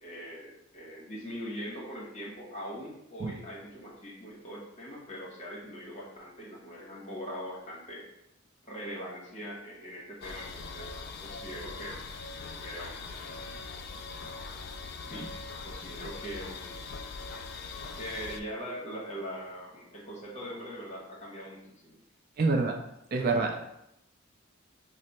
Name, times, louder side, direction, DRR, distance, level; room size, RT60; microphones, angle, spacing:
voice 1, 0.0-8.1 8.6-12.0 12.6-13.1 15.0-15.3 15.6-16.8 18.0-22.0, equal, 35° left, -4 dB, 1.0 m, -41 dB
sound 1, 10.2-18.4, left 4 dB, 50° left, 0.3 m, -41 dB
voice 2, 22.4-22.8 23.1-23.7, right 3 dB, 50° right, 3 dB, 0.4 m, -26 dB
3.2 x 2.0 x 4.2 m, 0.80 s
head